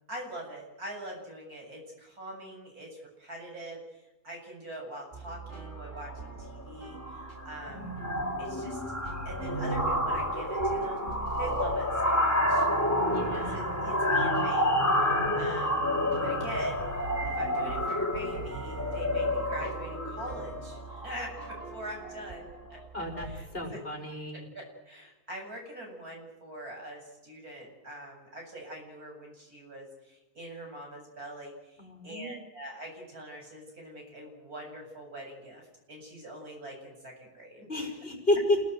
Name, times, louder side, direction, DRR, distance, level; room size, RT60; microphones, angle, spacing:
voice 1, 0.1-3.8 4.2-8.0 8.4-11.0 11.4-12.7 13.3-14.7 15.0-16.9 17.2-22.8 23.3-23.8 24.1-35.6 35.9-37.9, right 1 dB, 75° right, 1 dB, 8.6 m, -43 dB
sound 1, 5.1-23.4, right 4 dB, 45° right, 3.7 m, -43 dB
sound 2, 5.8-6.1 6.4-6.7 6.9-21.8, left 1 dB, 10° left, 2.7 m, -29 dB
voice 2, 13.1-13.6 22.9-23.3 23.5-24.5 31.8-32.3 37.7-38.6, left 1 dB, 40° left, 2 dB, 5.4 m, -31 dB
28.5 x 18.5 x 8.0 m, 0.98 s
omnidirectional pair, 1.6 m